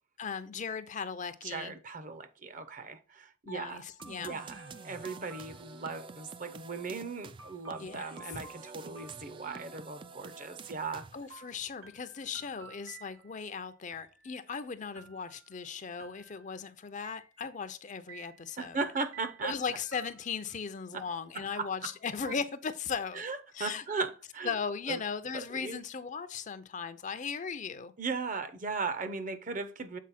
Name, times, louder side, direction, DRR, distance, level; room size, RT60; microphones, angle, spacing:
voice 1, 0.2-1.7 3.5-4.4 7.8-8.4 11.1-18.8 19.4-23.2 23.5-23.9 24.4-27.9, left 6 dB, 40° left, 0.5 m, -37 dB
voice 2, 1.4-3.8 4.2-11.1 18.6-19.5 20.9-21.0 21.3-21.7 23.1-24.5 24.9-25.0 25.3-25.8 28.0-30.0, right 4 dB, 40° right, 0.7 m, -37 dB
sound 1, 3.5-6.2 7.4-10.4 11.3-13.5 13.9-14.5 15.0-15.6 16.0-16.6 17.0-17.7 18.1-20.6, right 4 dB, 75° right, 0.9 m, -54 dB
sound 2, 4.0-11.4, right 4 dB, 25° right, 0.3 m, -49 dB
7.4 x 4.3 x 4.1 m
head